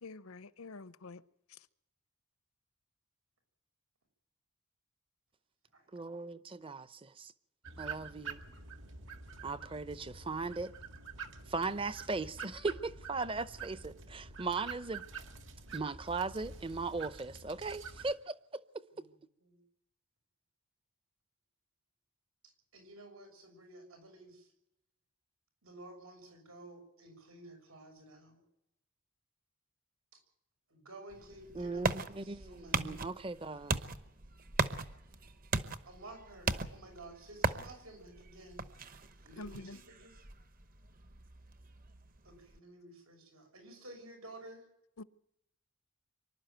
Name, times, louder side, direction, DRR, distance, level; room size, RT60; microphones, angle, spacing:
voice 1, 0.0-1.2 1.5-1.7 39.4-39.8 45.0-45.1, left 3 dB, 85° left, 0.8 m, -47 dB
voice 2, 5.9-7.3 7.8-8.4 9.4-10.7 11.5-15.1 15.7-18.8 31.5-33.8, right 3 dB, 25° right, 0.7 m, -38 dB
sound 1, 7.6-18.1, right 5 dB, 60° right, 2.0 m, -47 dB
voice 3, 18.9-19.6 22.7-24.5 25.6-28.4 30.1-30.2 30.7-32.9 35.9-38.7 39.2-40.2 42.2-44.6, right 2 dB, 90° right, 6.9 m, -53 dB
sound 2, 31.1-42.6, right 3 dB, 40° right, 1.0 m, -39 dB
25.0 x 12.0 x 9.1 m
head